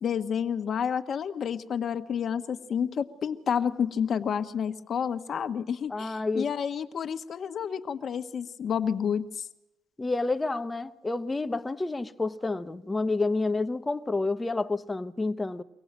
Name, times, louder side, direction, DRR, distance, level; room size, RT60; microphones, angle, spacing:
voice 1, 0.0-9.5, left 7 dB, 55° left, 1.3 m, -30 dB
voice 2, 5.9-6.5 10.0-15.6, left 3 dB, 20° left, 1.0 m, -29 dB
24.5 x 17.5 x 7.5 m
cardioid pair, 90°, 0 cm